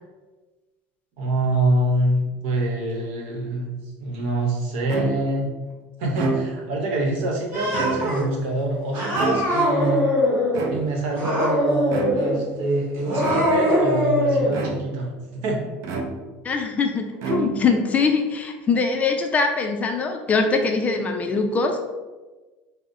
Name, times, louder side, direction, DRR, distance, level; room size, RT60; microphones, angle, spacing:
voice 1, 1.2-5.5 6.0-10.0 10.7-15.6, right 1 dB, 80° right, 0 dB, 0.8 m, -25 dB
sound 1, 4.9-5.4 6.0-6.8 7.6-8.4 9.1-9.8 10.5-11.2 11.9-12.4 13.2-13.8 14.5-15.1 15.8-16.5 17.2-17.9, right 4 dB, 55° right, 0.5 m, -30 dB
Cat, 7.5-8.2 8.9-10.6 11.1-12.4 13.0-14.5, equal, 40° right, 1.4 m, -22 dB
voice 2, 16.4-21.8, left 4 dB, 25° left, 5 dB, 0.3 m, -22 dB
5.2 x 2.0 x 2.6 m, 1.2 s
cardioid pair, 135°, 6 cm